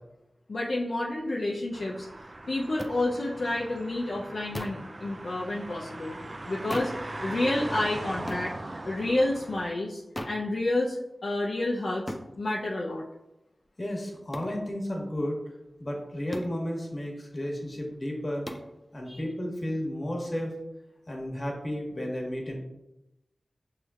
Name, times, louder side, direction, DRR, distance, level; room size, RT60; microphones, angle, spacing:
voice 1, 0.5-2.1 2.5-6.2 6.5-6.9 7.2-8.5 8.8-11.0 11.2-13.0 19.1-19.2, left 2 dB, 75° left, -3 dB, 0.5 m, -29 dB
sound 1, 1.7-9.7, right 2 dB, 45° right, 0.3 m, -40 dB
sound 2, 2.8-3.0 4.5-4.9 6.7-7.0 8.3-8.5 10.1-10.4 12.1-12.3 14.3-14.6 16.3-16.6 18.4-18.7, equal, 15° left, 0.5 m, -36 dB
voice 2, 13.8-15.4 15.8-18.5 18.9-20.6 21.1-22.5, equal, 40° left, 0 dB, 1.3 m, -33 dB
6.2 x 3.2 x 2.3 m, 0.91 s
cardioid pair, 40°, 0 cm